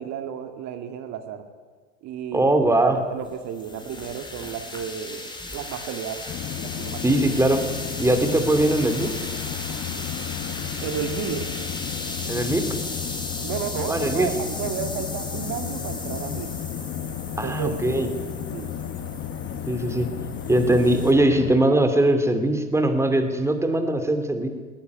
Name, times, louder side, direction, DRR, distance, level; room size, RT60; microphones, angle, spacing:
voice 1, 0.0-1.5 2.0-2.5 2.9-6.2 6.8-7.2 10.8-11.5 13.4-16.5 17.4-17.8 18.5-18.7, right 8 dB, 45° right, 6 dB, 2.1 m, -32 dB
voice 2, 2.3-3.0 7.0-7.6 8.0-9.1 12.3-12.6 13.9-14.3 17.4-18.1 19.7-20.1 20.5-24.5, right 1 dB, 5° right, 6 dB, 2.7 m, -21 dB
sound 1, 2.9-21.1, left 2 dB, 10° left, 3.9 m, -36 dB
sound 2, 6.3-21.6, left 9 dB, 30° left, 1.2 m, -33 dB
20.5 x 17.5 x 9.6 m, 1.5 s
hypercardioid pair, 95°, 40 cm